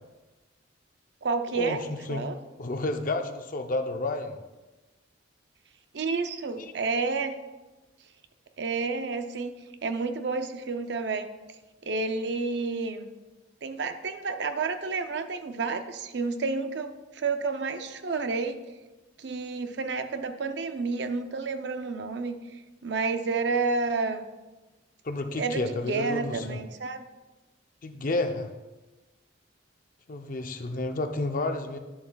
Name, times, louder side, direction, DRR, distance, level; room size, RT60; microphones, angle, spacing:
voice 1, 1.2-1.8 2.1-2.4 5.9-7.4 8.6-9.5 9.8-11.3 11.8-13.1 13.6-18.6 19.2-22.4 22.8-24.2 25.4-27.0, right 4 dB, 60° right, 8 dB, 0.5 m, -30 dB
voice 2, 2.6-4.4 6.6-6.7 25.0-26.6 27.8-28.5 30.1-31.8, left 2 dB, 45° left, 6 dB, 0.6 m, -30 dB
10.5 x 7.3 x 2.3 m, 1.2 s
head